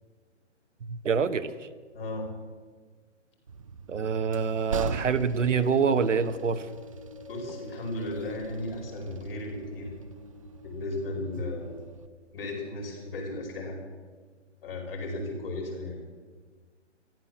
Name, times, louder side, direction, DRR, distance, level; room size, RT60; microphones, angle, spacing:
voice 1, 0.9-1.5 3.9-6.7, right 6 dB, 85° right, 11 dB, 1.2 m, -26 dB
voice 2, 1.9-2.3 7.3-9.9 10.6-11.8 12.3-13.8 14.6-16.0, left 2 dB, 50° left, 1 dB, 4.9 m, -35 dB
Train, 3.5-12.1, right 4 dB, 30° right, 0.5 m, -42 dB
sound 1, 4.7-12.1, left 5 dB, 20° left, 1.2 m, -47 dB
14.0 x 12.0 x 7.2 m, 1.5 s
hypercardioid pair, 160°, 36 cm